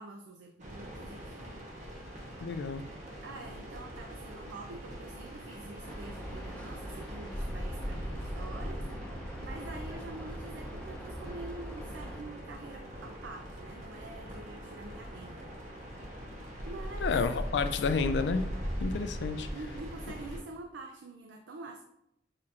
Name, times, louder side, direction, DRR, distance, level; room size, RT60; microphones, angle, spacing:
voice 1, 0.0-1.9 3.2-8.9 9.1-15.5 16.6-17.1 19.5-21.8, right 3 dB, 85° right, 0.4 m, -46 dB
sound 1, 0.6-20.4, equal, 40° right, 1.0 m, -40 dB
voice 2, 2.4-2.9 17.0-18.5 18.8-19.5, left 5 dB, 75° left, 0.4 m, -30 dB
sound 2, 5.8-12.2, equal, 10° left, 0.6 m, -44 dB
6.5 x 2.5 x 2.8 m
head